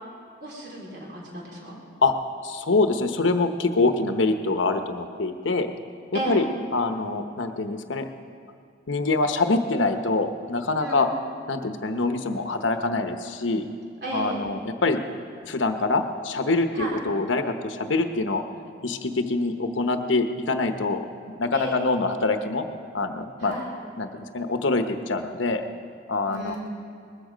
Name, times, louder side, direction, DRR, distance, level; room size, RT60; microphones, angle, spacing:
voice 1, 0.4-1.8 6.1-6.4 10.8-11.1 14.0-14.5 16.7-17.0 21.5-21.9 23.4-23.7 26.3-26.6, right 1 dB, 60° right, -3 dB, 4.1 m, -33 dB
voice 2, 2.4-5.7 6.3-6.4 6.7-8.1 8.9-11.1 11.5-13.7 14.1-15.0 15.5-18.4 18.8-21.1 21.4-22.6 22.9-23.5 24.0-25.7 26.1-26.6, left 3 dB, 90° left, 7 dB, 1.0 m, -25 dB
20.0 x 14.0 x 5.1 m, 2.4 s
head